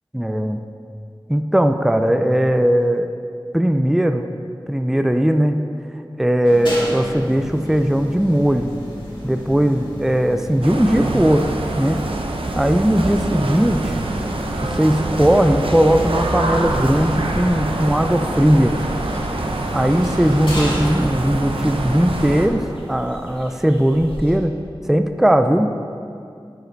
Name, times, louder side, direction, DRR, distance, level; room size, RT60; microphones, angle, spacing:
voice 1, 0.1-0.6 1.3-3.1 3.5-4.3 4.7-5.6 6.2-8.7 9.2-11.5 11.8-12.0 12.5-13.9 14.6-18.7 19.7-24.5 24.9-25.7, equal, 5° right, 7 dB, 0.4 m, -18 dB
sound 1, 6.4-22.5, left 1 dB, 60° left, 2.0 m, -33 dB
sound 2, 10.6-22.5, right 2 dB, 75° right, 0.7 m, -25 dB
sound 3, 16.6-24.4, equal, 85° left, 1.3 m, -36 dB
11.5 x 5.0 x 4.5 m, 2.4 s
wide cardioid pair, 55°, 9 cm